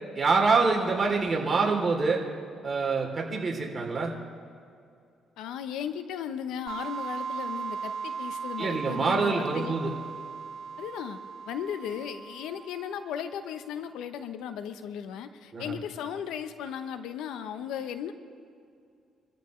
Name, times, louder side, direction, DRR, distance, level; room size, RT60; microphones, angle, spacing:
voice 1, 0.1-2.2 2.6-4.1 8.6-9.9 15.5-15.8, right 4 dB, 35° right, -1 dB, 3.2 m, -25 dB
voice 2, 5.4-9.8 10.8-11.2 11.5-18.1, left 8 dB, 90° left, 10 dB, 0.8 m, -36 dB
sound 1, 6.7-13.2, right 6 dB, 70° right, 2.4 m, -38 dB
27.0 x 14.0 x 3.2 m, 2.4 s
cardioid pair, 90°, 0 cm